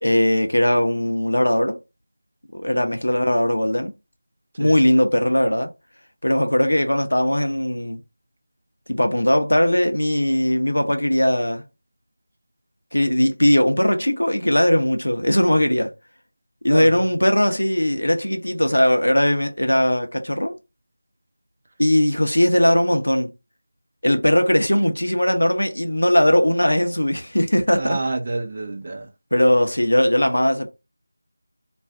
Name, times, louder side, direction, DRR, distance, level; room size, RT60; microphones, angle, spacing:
voice 1, 0.0-1.8 2.5-3.9 4.6-5.7 6.2-8.0 8.9-11.6 12.9-15.9 16.6-20.6 21.8-23.3 24.0-28.0 29.3-30.7, left 1 dB, 90° left, 0.7 m, -19 dB
voice 2, 16.7-17.1 27.8-29.1, right 2 dB, 35° right, 0.5 m, -28 dB
2.5 x 2.3 x 3.4 m
figure-of-eight pair, 170°, 0 cm